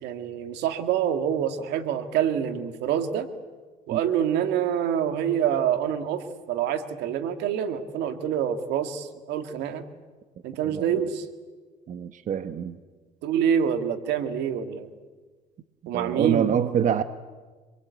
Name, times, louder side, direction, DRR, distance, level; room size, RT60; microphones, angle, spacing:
voice 1, 0.0-3.3 3.9-9.8 10.4-11.3 13.2-14.9 15.9-16.6, right 9 dB, 85° right, 8 dB, 2.1 m, -26 dB
voice 2, 10.7-11.0 11.9-12.8 15.9-17.0, right 8 dB, 50° right, 11 dB, 1.1 m, -26 dB
26.0 x 22.0 x 8.3 m, 1.4 s
cardioid pair, 110°, 17 cm